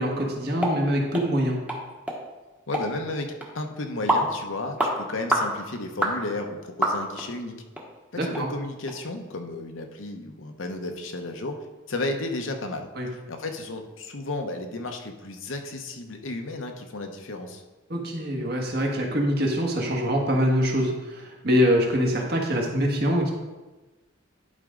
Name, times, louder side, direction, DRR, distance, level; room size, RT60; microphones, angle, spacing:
voice 1, 0.0-1.6 8.2-8.5 13.0-13.1 17.9-23.3, equal, 50° right, 0 dB, 1.4 m, -24 dB
sound 1, 0.6-0.8 1.1-1.3 1.7-1.8 2.1-2.2 2.7-2.9 3.4-3.5 4.1-4.3 4.8-4.9 5.3-5.5 6.0-6.2 6.8-7.3 7.7-7.8 8.3-8.4 8.9-9.0, right 1 dB, 5° right, 1.0 m, -25 dB
voice 2, 2.7-7.6 8.1-11.6 11.9-12.9 13.3-17.6, left 2 dB, 70° left, 4 dB, 0.9 m, -33 dB
11.0 x 5.0 x 3.7 m, 1.2 s
head